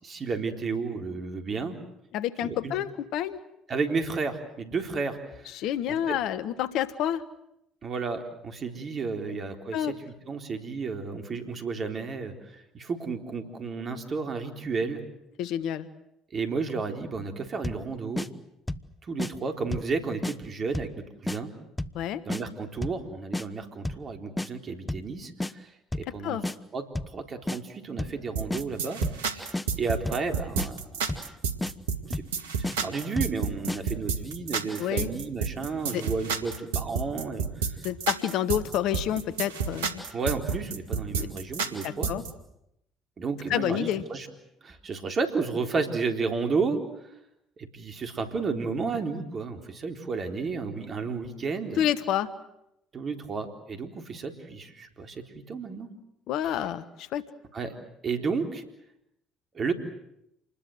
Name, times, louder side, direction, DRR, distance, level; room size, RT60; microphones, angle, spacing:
voice 1, 0.0-1.8 2.4-2.7 3.7-5.5 6.1-6.2 7.8-15.0 16.3-18.3 19.1-21.5 22.3-26.4 26.7-26.9 27.1-31.1 32.1-32.2 32.8-37.4 40.1-42.1 43.2-44.3 44.6-46.8 47.7-51.8 52.9-55.9 57.5-57.8 58.0-58.6 59.5-59.7, right 4 dB, 40° right, 5 dB, 4.0 m, -32 dB
voice 2, 2.1-3.4 5.5-7.2 9.3-9.4 9.7-10.0 15.4-15.9 21.9-22.2 26.2-26.4 34.8-35.1 35.9-36.0 37.8-40.0 41.8-42.2 43.5-44.0 51.8-52.3 56.3-57.2, left 10 dB, 65° left, 14 dB, 1.3 m, -28 dB
sound 1, 17.6-17.9 18.2-18.3 18.7-18.9 19.2-19.3 19.7-19.9 20.2-20.4 20.7-21.0 21.3-21.4 21.8-22.0 22.3-22.4 22.8-23.0 23.3-23.5 23.8-24.1 24.4-24.5 24.9-25.1 25.4-25.5 25.9-26.1 26.4-26.6 26.9-27.2 27.5-27.6 28.0-28.2 28.5-28.6 29.0-29.2 29.5-29.7 30.1-30.3 30.6-30.7 31.1-31.3 31.6-31.7 32.1-32.3 32.6-32.8 33.2-33.4 33.7-33.8, left 1 dB, 10° left, 1.1 m, -31 dB
sound 2, 28.4-42.3, right 6 dB, 80° right, 2.1 m, -30 dB
28.0 x 21.0 x 8.0 m, 0.81 s
hypercardioid pair, 60°, 0 cm